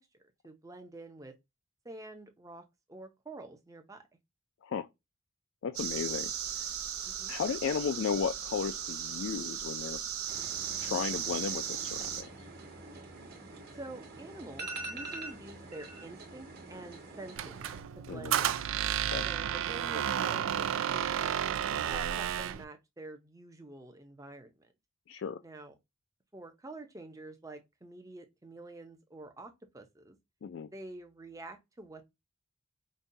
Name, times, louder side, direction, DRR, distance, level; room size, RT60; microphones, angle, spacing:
voice 1, 0.4-1.4 1.8-4.0 7.0-7.3 13.7-17.6 18.0-18.6 19.2-21.4 21.9-24.7 25.4-25.8 26.3-30.2 30.7-32.1, right 2 dB, 15° right, 0.6 m, -47 dB
voice 2, 5.6-6.3 7.3-10.0 10.8-12.5 18.1-18.3 19.1-19.3 25.1-25.4 30.4-30.7, left 6 dB, 60° left, 0.3 m, -34 dB
sound 1, 5.7-12.2, right 9 dB, 80° right, 0.7 m, -37 dB
sound 2, 10.3-17.8, right 2 dB, 45° right, 1.2 m, -45 dB
Squeak, 17.4-22.6, right 9 dB, 65° right, 0.3 m, -32 dB
5.2 x 2.2 x 2.6 m
head